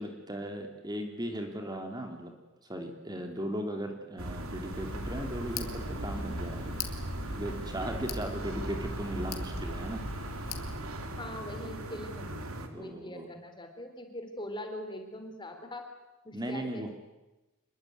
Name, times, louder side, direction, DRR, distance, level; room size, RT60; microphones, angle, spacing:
voice 1, 0.0-2.3 2.6-6.7 7.3-10.0 12.7-13.3 16.3-16.9, right 1 dB, 20° right, 4 dB, 3.0 m, -37 dB
sound 1, 4.2-12.7, right 1 dB, 90° right, 3.0 m, -39 dB
Tick, 4.7-10.8, left 3 dB, 90° left, 3.0 m, -40 dB
voice 2, 11.1-15.8 16.2-16.9, left 1 dB, 20° left, 6 dB, 3.7 m, -42 dB
26.5 x 22.0 x 9.4 m, 1.0 s
head